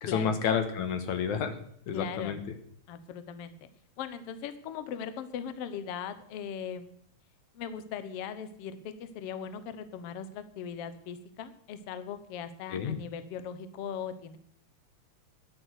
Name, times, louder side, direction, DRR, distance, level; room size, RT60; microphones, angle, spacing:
voice 1, 0.0-1.5 1.9-2.4 12.7-13.0, left 7 dB, 85° left, 8 dB, 2.8 m, -30 dB
voice 2, 1.9-2.4 2.9-3.6 4.0-6.9 7.5-14.4, left 7 dB, 65° left, 12 dB, 1.8 m, -39 dB
13.5 x 10.5 x 6.4 m, 0.66 s
omnidirectional pair, 3.3 m